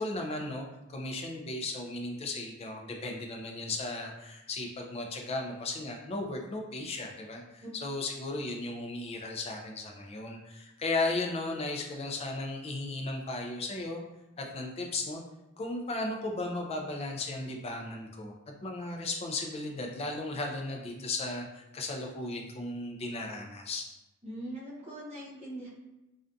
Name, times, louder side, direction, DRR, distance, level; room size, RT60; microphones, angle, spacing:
voice 1, 0.0-14.0 14.4-15.2 15.6-18.3 18.6-23.9, left 2 dB, 30° left, 2 dB, 0.3 m, -35 dB
voice 2, 24.2-25.7, right 1 dB, 30° right, -7 dB, 0.7 m, -41 dB
2.4 x 2.2 x 2.5 m, 0.98 s
head